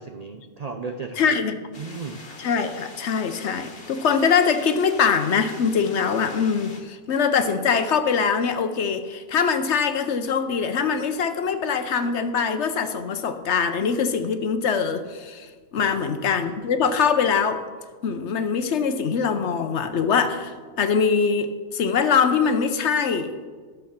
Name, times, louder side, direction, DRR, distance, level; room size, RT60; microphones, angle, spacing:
voice 1, 0.0-1.3 1.8-2.2 15.8-16.3, right 4 dB, 60° right, 5 dB, 0.4 m, -35 dB
voice 2, 1.2-1.5 2.4-17.6 18.0-23.3, left 6 dB, 60° left, 9 dB, 0.9 m, -23 dB
sound 1, 1.7-6.8, left 3 dB, 45° left, 1.5 m, -43 dB
12.0 x 6.6 x 5.8 m, 1.5 s
omnidirectional pair, 1.5 m